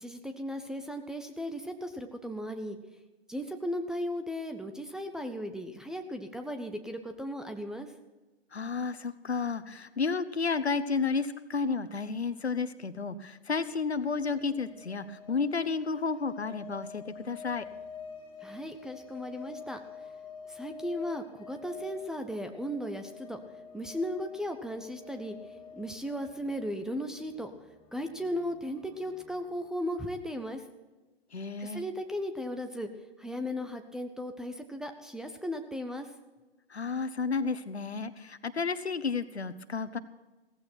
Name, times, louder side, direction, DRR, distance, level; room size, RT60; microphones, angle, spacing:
voice 1, 0.0-2.8 3.3-7.9 18.4-19.8 20.5-23.4 23.7-25.4 25.8-27.5 27.9-30.6 31.6-32.9 33.2-36.1, equal, ahead, 4 dB, 0.6 m, -36 dB
voice 2, 8.5-17.6 31.3-31.8 36.7-40.0, left 4 dB, 85° left, 13 dB, 1.1 m, -32 dB
sound 1, 13.5-29.7, left 6 dB, 15° left, 2.6 m, -48 dB
16.0 x 15.0 x 4.4 m, 1.1 s
figure-of-eight pair, 120°, 32 cm